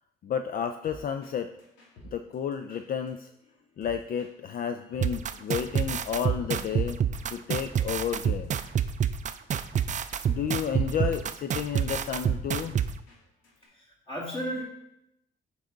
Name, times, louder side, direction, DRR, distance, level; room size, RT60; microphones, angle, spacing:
voice 1, 0.2-1.5 2.0-3.3 3.8-7.0 7.3-8.6 10.3-12.8, left 8 dB, 45° left, 8 dB, 0.4 m, -31 dB
sound 1, 0.8-1.3 1.6-4.3 4.5-4.6 4.9-9.0 9.4-10.2 10.5-10.6 10.8-13.2 13.4-13.7, right 1 dB, 90° left, 1.9 m, -52 dB
sound 2, 5.0-12.9, right 8 dB, 40° right, 0.4 m, -27 dB
voice 2, 13.7-14.6, equal, 25° left, -4 dB, 2.2 m, -34 dB
7.6 x 4.6 x 3.9 m, 0.84 s
cardioid pair, 90°, 20 cm